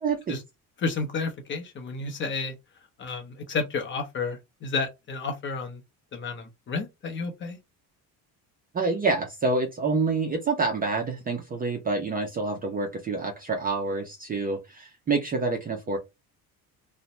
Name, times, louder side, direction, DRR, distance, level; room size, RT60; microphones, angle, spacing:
voice 1, 0.0-0.4 8.7-16.0, right 3 dB, 25° right, 0.4 m, -27 dB
voice 2, 0.8-2.5 3.0-5.8 6.1-7.6, left 4 dB, 30° left, 0.6 m, -31 dB
2.6 x 2.1 x 2.9 m
cardioid pair, 165°, 38 cm